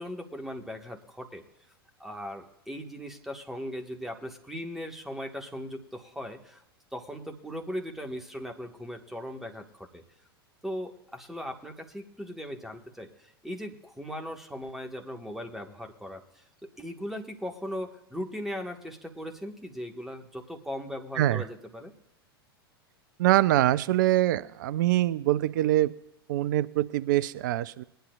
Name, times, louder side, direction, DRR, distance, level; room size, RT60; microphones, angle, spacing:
voice 1, 0.0-1.4 2.0-6.6 6.9-10.0 10.6-21.9, equal, ahead, 3 dB, 1.6 m, -38 dB
voice 2, 23.2-25.9 26.3-27.8, right 14 dB, 50° right, 17 dB, 0.5 m, -24 dB
21.0 x 10.0 x 2.5 m, 0.80 s
figure-of-eight pair, 90°, 13 cm